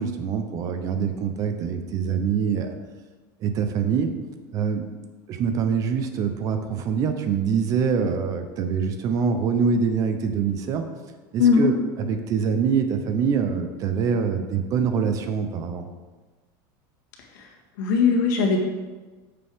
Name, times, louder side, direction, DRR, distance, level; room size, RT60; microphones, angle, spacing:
voice 1, 0.0-2.7 3.4-4.1 4.5-4.9 5.3-10.9 11.3-15.9, right 6 dB, 35° right, 7 dB, 0.7 m, -24 dB
voice 2, 11.4-11.7 17.8-18.6, left 5 dB, 80° left, 1 dB, 1.7 m, -19 dB
9.1 x 6.9 x 3.6 m, 1.3 s
supercardioid pair, 155°, 10 cm